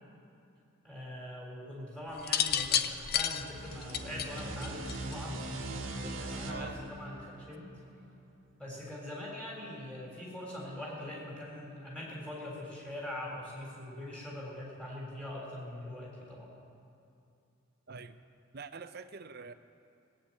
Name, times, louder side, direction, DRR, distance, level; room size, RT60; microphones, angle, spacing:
voice 1, 0.8-5.5 5.9-7.7 8.6-16.5, left 1 dB, 5° left, -4 dB, 3.8 m, -42 dB
sound 1, 2.2-5.3 6.4-6.8, left 9 dB, 50° left, 0.6 m, -31 dB
sound 2, 3.1-8.4, right 2 dB, 65° right, 1.5 m, -41 dB
voice 2, 6.5-6.8 17.9-18.2 18.5-19.5, right 4 dB, 50° right, 11 dB, 0.6 m, -44 dB
18.0 x 8.7 x 8.7 m, 2.6 s
head